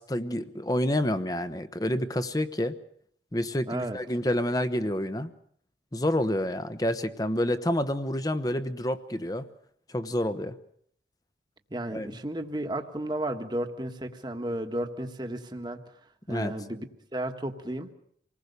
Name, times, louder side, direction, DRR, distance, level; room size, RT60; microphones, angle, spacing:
voice 1, 0.0-2.7 3.3-5.3 5.9-9.5 9.9-10.5 11.9-12.2 16.3-16.5, left 1 dB, 20° left, 10 dB, 1.0 m, -28 dB
voice 2, 3.7-4.0 11.7-15.8 16.3-16.8 17.1-17.9, right 1 dB, 25° right, 6 dB, 1.5 m, -33 dB
27.0 x 19.5 x 6.8 m, 0.65 s
head